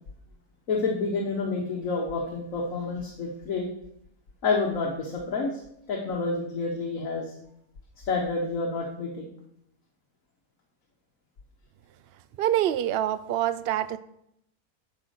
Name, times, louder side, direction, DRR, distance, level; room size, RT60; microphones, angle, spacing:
voice 1, 0.7-3.7 4.4-5.6 5.9-7.3 8.1-9.3, left 3 dB, 60° left, 0 dB, 1.6 m, -29 dB
voice 2, 12.4-14.0, right 12 dB, 85° right, 15 dB, 0.5 m, -25 dB
9.7 x 6.2 x 6.5 m, 0.75 s
omnidirectional pair, 1.6 m